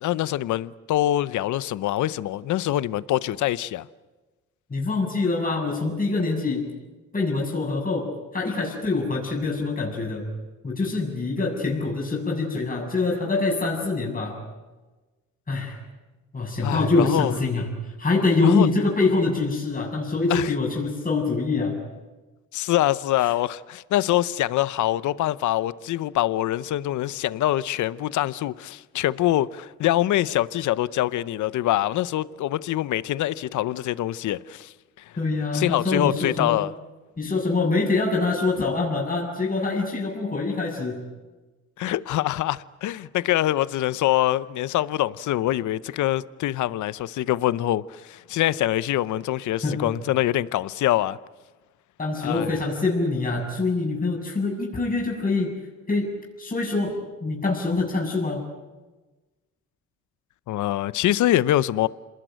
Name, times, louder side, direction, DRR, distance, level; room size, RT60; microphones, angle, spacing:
voice 1, 0.0-3.9 16.6-17.3 18.4-18.7 20.3-20.5 22.5-35.1 35.5-36.7 41.8-51.2 52.2-52.5 60.5-61.9, left 14 dB, 75° left, 0.7 m, -24 dB
voice 2, 4.7-6.7 7.1-10.3 10.6-14.4 15.5-15.8 16.3-17.7 18.0-21.8 35.2-36.6 37.2-41.0 49.6-49.9 52.0-55.5 55.9-56.1 56.4-56.9 57.2-58.4, left 3 dB, 30° left, 7.2 m, -25 dB
27.0 x 20.5 x 9.1 m
cardioid pair, 90°, 30 cm